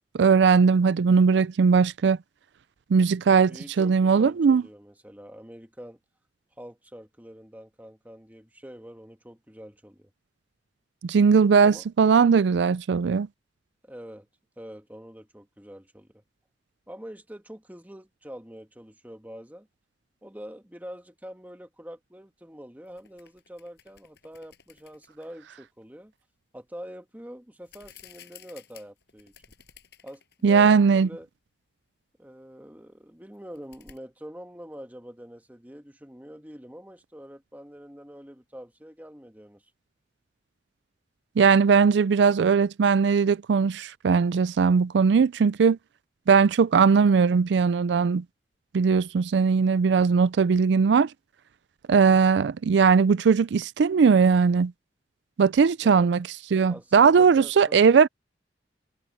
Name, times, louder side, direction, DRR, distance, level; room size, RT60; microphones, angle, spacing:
voice 1, 0.1-2.2 2.9-3.5 3.8-4.6 11.0-13.3 30.4-31.1 41.4-45.8 46.3-48.2 48.7-51.1 51.9-54.7 55.4-58.1, right 5 dB, 75° right, 0.4 m, -19 dB
voice 2, 3.5-6.0 6.6-10.1 11.6-11.8 13.8-14.3 14.6-16.2 16.9-19.7 20.2-26.1 26.5-29.3 30.0-31.3 32.2-39.6 55.8-56.1 56.7-57.8, equal, 10° right, 1.7 m, -45 dB
sound 1, 22.8-25.4 27.6-30.4 30.8-30.9 33.3-34.0, left 9 dB, 65° left, 6.5 m, -54 dB
head